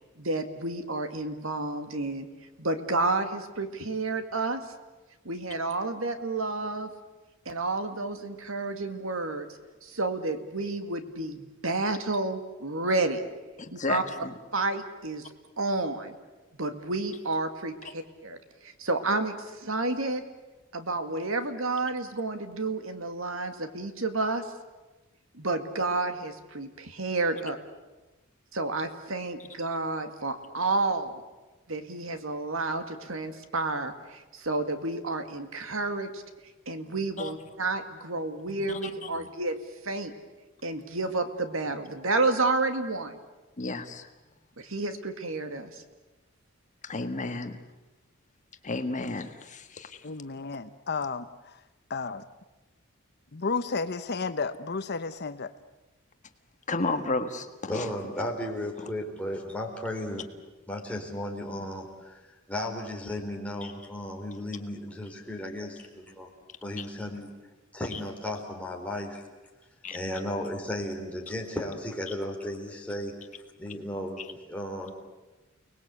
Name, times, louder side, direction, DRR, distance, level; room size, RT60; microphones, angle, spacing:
voice 1, 0.2-2.3 2.6-4.6 5.2-6.9 7.5-9.5 9.8-13.2 13.7-14.0 14.5-16.2 16.6-20.2 20.7-24.5 25.3-27.6 28.5-31.2 31.7-36.2 36.7-39.6 39.8-40.1 40.6-43.2 44.6-45.8, right 3 dB, 75° right, 2.2 m, -30 dB
voice 2, 13.6-14.3 37.2-37.3 38.7-38.8 39.2-39.3 43.6-44.1 46.8-47.6 48.6-50.0 56.7-57.9 66.8-66.9 67.9-68.0 69.8-70.0 74.2-74.3, left 3 dB, 35° left, 1.5 m, -32 dB
voice 3, 50.0-51.6 51.9-52.2 53.3-55.5, left 4 dB, 55° left, 0.9 m, -32 dB
voice 4, 57.7-60.3 60.7-62.2 62.5-66.3 66.6-67.3 67.7-69.2 69.9-73.1 73.6-74.2 74.5-74.9, left 1 dB, 5° left, 4.1 m, -34 dB
30.0 x 20.5 x 8.3 m
head